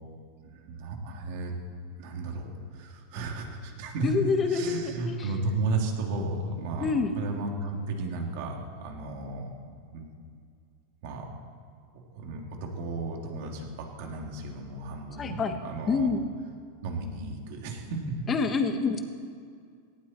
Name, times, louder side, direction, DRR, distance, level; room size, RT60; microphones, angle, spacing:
voice 1, 0.5-1.5 2.0-4.1 4.4-9.5 9.8-10.1 11.0-11.3 12.1-16.1 16.8-18.0, right 3 dB, 55° right, 1 dB, 3.1 m, -34 dB
voice 2, 4.0-5.3 6.8-7.1 15.2-15.5 15.9-16.2 18.3-19.0, left 4 dB, 20° left, 7 dB, 1.3 m, -27 dB
18.5 x 16.0 x 4.6 m, 2.2 s
supercardioid pair, 150°, 0 cm